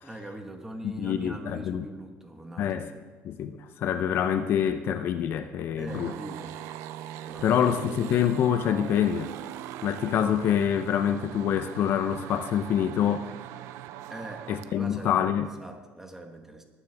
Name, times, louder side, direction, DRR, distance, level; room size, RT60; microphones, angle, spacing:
voice 1, 0.0-2.9 5.8-6.5 7.3-7.6 14.1-15.2 15.6-16.6, right 1 dB, 10° right, 4 dB, 1.2 m, -41 dB
voice 2, 0.8-1.8 2.6-2.9 3.2-6.1 7.4-9.3 9.8-13.3 14.5-15.5, left 9 dB, 50° left, 9 dB, 0.6 m, -26 dB
sound 1, 5.9-14.7, right 12 dB, 75° right, 0.5 m, -40 dB
19.0 x 9.6 x 3.4 m, 1.4 s
cardioid pair, 160°, 5 cm